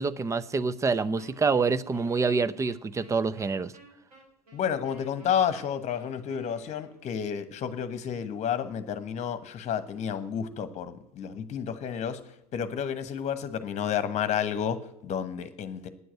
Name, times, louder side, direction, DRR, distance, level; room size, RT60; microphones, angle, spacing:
voice 1, 0.0-3.7, right 4 dB, 15° right, 15 dB, 0.6 m, -26 dB
Wind instrument woodwind instrument, 1.2-7.2, right 2 dB, 75° right, 3.6 m, -53 dB
voice 2, 4.5-12.2 12.5-15.9, left 8 dB, 35° left, 13 dB, 1.3 m, -31 dB
9.8 x 7.8 x 9.1 m, 0.85 s
figure-of-eight pair, 80°, 19 cm